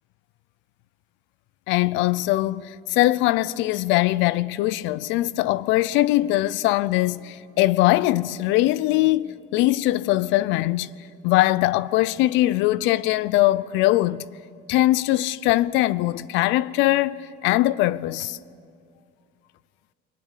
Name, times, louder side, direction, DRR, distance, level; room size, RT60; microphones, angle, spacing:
voice 1, 1.7-10.9 11.2-14.2 14.7-18.4, left 16 dB, 65° left, 0.6 m, -21 dB
29.5 x 22.5 x 7.4 m
cardioid pair, 180°, 21 cm